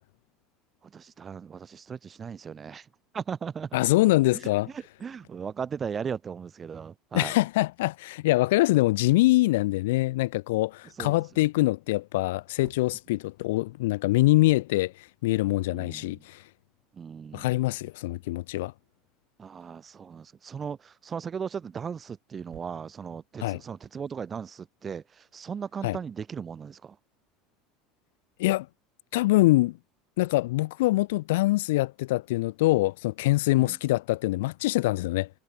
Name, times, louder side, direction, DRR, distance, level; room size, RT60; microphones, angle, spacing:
voice 1, 0.9-2.9 3.1-3.7 4.3-4.4 4.7-7.3 11.0-11.2 15.7-16.1 16.9-17.5 19.4-27.0 33.6-33.8, right 6 dB, 25° right, 0.6 m, -37 dB
voice 2, 3.7-4.7 7.1-14.9 15.2-16.4 17.3-18.7 23.4-23.6 25.8-26.0 28.4-28.7 29.1-29.8 30.2-35.3, left 19 dB, 85° left, 0.5 m, -24 dB
sound 1, 12.5-13.8 16.7-20.3 21.5-23.7, right 20 dB, 60° right, 2.8 m, -60 dB
supercardioid pair, 120°, 0 cm